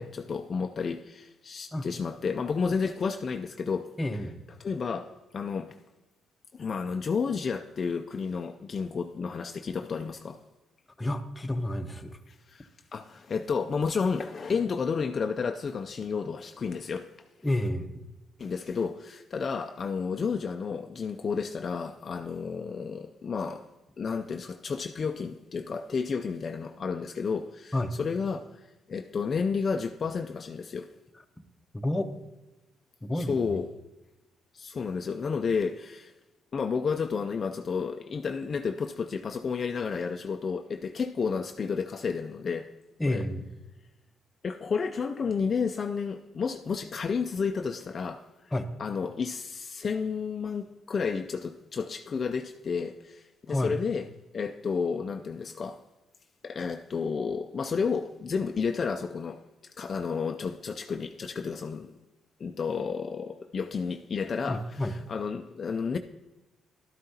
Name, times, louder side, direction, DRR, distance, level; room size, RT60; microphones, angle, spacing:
voice 1, 0.0-3.9 4.6-5.8 6.5-10.4 12.5-17.1 18.4-23.7 24.0-30.9 33.1-33.7 34.5-36.1 36.5-42.7 43.1-43.2 44.4-48.5 48.8-54.1 54.3-55.8 56.4-61.9 62.4-66.0, left 5 dB, 45° left, 0.4 m, -31 dB
voice 2, 4.0-4.4 11.0-12.2 17.4-18.0 27.7-27.9 31.7-32.1 33.0-33.6 43.0-43.5 48.5-48.7 53.5-53.8 64.4-65.0, left 1 dB, 15° left, 0.8 m, -30 dB
12.0 x 9.4 x 2.8 m
cardioid pair, 90°, 0 cm